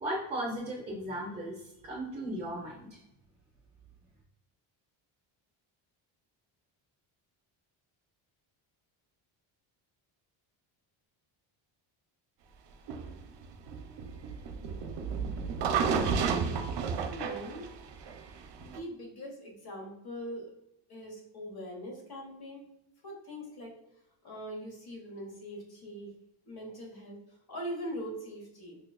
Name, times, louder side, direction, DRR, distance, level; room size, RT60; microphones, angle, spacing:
voice 1, 0.0-3.0, right 1 dB, 15° right, -3 dB, 0.5 m, -36 dB
sound 1, 12.9-18.8, right 6 dB, 60° right, 0.5 m, -32 dB
voice 2, 17.0-17.7 18.6-20.5 20.9-22.6 23.0-23.7 24.2-26.1 26.4-28.8, equal, 45° left, -1 dB, 1.1 m, -42 dB
5.4 x 2.2 x 2.3 m, 0.85 s
cardioid pair, 120°, 50 cm